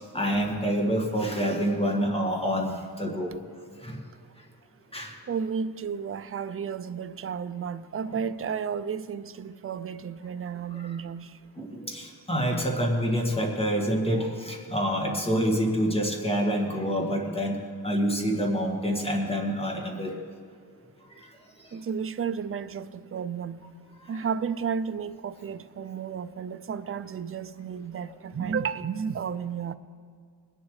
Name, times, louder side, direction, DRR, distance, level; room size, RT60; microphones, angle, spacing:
voice 1, 0.1-3.3 3.8-4.0 4.9-5.1 10.7-10.9 11.6-17.6 17.8-20.1 24.1-24.2 28.4-28.5, equal, 15° left, 1.9 m, -27 dB
voice 2, 5.3-11.4 21.7-23.7 24.1-29.7, right 6 dB, 35° right, 0.4 m, -32 dB
21.0 x 11.0 x 3.2 m
wide cardioid pair, 150°, 40 cm